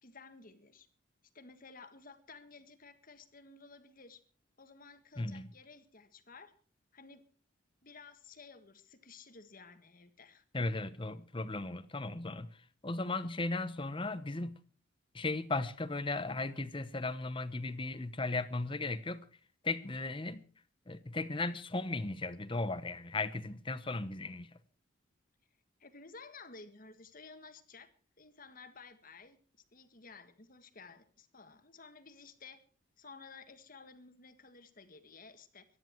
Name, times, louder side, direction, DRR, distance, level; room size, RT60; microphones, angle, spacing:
voice 1, 0.0-0.9 1.3-4.2 4.6-6.5 6.9-7.2 7.8-10.4 25.8-27.9 28.2-29.4 29.7-32.6 33.0-35.6, left 4 dB, 45° left, 1.7 m, -54 dB
voice 2, 5.2-5.5 10.5-12.5 12.8-14.6 15.1-19.2 19.6-20.4 20.9-24.5, left 2 dB, 25° left, 0.9 m, -36 dB
23.5 x 10.0 x 4.6 m
head